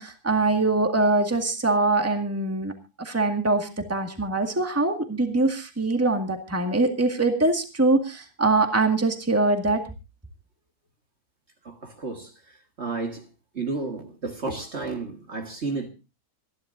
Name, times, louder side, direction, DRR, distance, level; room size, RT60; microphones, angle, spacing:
voice 1, 0.0-9.8, right 2 dB, 10° right, 1.9 m, -23 dB
voice 2, 11.6-13.3 13.5-15.9, right 3 dB, 45° right, 1.9 m, -32 dB
26.5 x 11.0 x 2.6 m
omnidirectional pair, 1.6 m